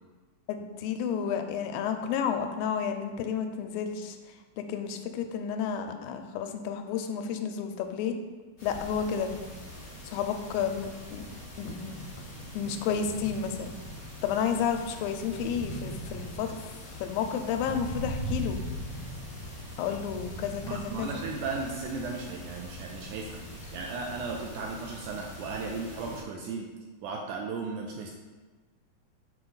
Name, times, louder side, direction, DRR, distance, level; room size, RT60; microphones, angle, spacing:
voice 1, 0.5-4.2 4.6-8.1 8.6-9.4 10.0-11.3 11.6-12.0 12.5-13.7 14.2-18.6 19.8-21.2, left 7 dB, 85° left, 6 dB, 2.3 m, -31 dB
sound 1, 8.6-26.2, equal, 35° left, 1.6 m, -41 dB
voice 2, 20.7-26.7 27.0-28.1, right 4 dB, 80° right, 0 dB, 1.9 m, -36 dB
6.3 x 4.4 x 3.9 m, 1.3 s
omnidirectional pair, 4.1 m